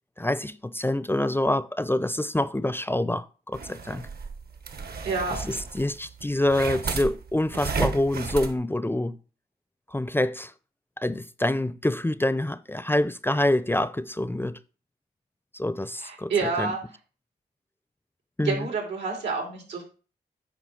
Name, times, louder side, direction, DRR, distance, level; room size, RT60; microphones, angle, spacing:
voice 1, 0.2-4.1 5.3-9.2 9.9-10.5 11.0-14.6 15.5-16.8 18.4-18.7, left 1 dB, 10° left, 0.5 m, -26 dB
sound 1, 3.5-8.5, right 5 dB, 60° right, 1.1 m, -33 dB
voice 2, 5.0-5.4 16.0-16.8 18.4-19.8, right 4 dB, 90° right, 3.0 m, -28 dB
9.2 x 3.1 x 6.5 m
cardioid pair, 60°, 17 cm